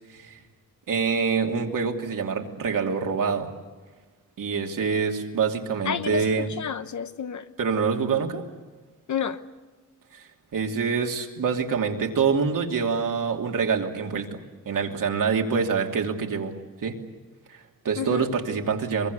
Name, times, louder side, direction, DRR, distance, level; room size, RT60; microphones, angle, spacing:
voice 1, 0.9-3.5 4.4-6.5 7.6-8.4 10.1-17.0 17.5-19.1, right 5 dB, 70° right, 2.9 m, -26 dB
voice 2, 5.8-7.5 9.1-9.4 18.0-18.3, left 8 dB, 60° left, 1.1 m, -30 dB
23.5 x 23.0 x 8.3 m
wide cardioid pair, 125°, 33 cm